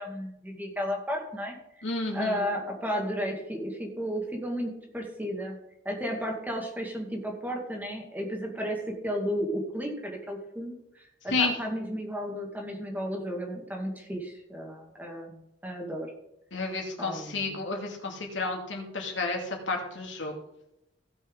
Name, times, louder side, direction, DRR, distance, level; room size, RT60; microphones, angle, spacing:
voice 1, 0.0-1.6 2.1-5.6 5.8-8.8 9.0-16.1 17.0-17.7, equal, 10° right, 0 dB, 2.2 m, -33 dB
voice 2, 1.8-2.4 11.3-11.5 16.5-20.3, left 3 dB, 80° left, 0 dB, 2.6 m, -31 dB
17.0 x 6.2 x 3.9 m, 0.84 s
head